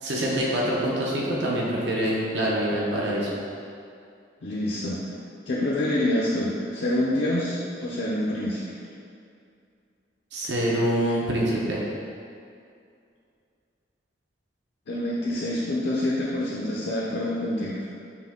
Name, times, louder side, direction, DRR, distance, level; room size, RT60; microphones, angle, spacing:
voice 1, 0.0-3.4 10.3-11.8, right 1 dB, 75° right, -4 dB, 0.7 m, -25 dB
voice 2, 4.4-5.1 5.5-8.8 14.9-17.8, left 1 dB, 65° left, -6 dB, 0.5 m, -27 dB
5.6 x 2.2 x 3.6 m, 2.4 s
head